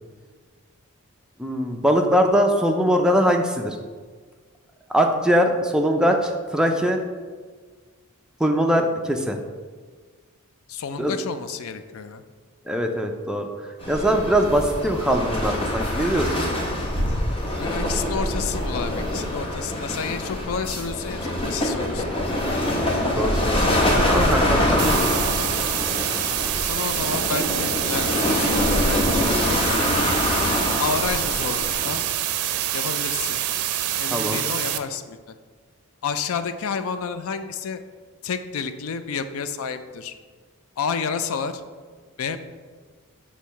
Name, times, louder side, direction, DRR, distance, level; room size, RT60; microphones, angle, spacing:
voice 1, 1.4-3.8 4.9-7.0 8.4-9.4 11.0-11.1 12.7-13.5 13.9-16.5 22.9-23.6 24.1-25.3 34.1-34.4, equal, 5° right, 3 dB, 0.4 m, -22 dB
voice 2, 10.7-12.2 17.6-22.3 26.6-30.1 30.8-32.0 32.7-33.4 33.9-35.3 36.0-37.8 38.2-40.1 40.8-41.6 42.2-42.4, left 6 dB, 70° left, 11 dB, 0.4 m, -30 dB
sound 1, 13.8-32.0, left 1 dB, 25° left, 0.9 m, -24 dB
sound 2, 24.8-34.8, right 11 dB, 90° right, 0.4 m, -26 dB
6.3 x 3.0 x 5.6 m, 1.5 s
head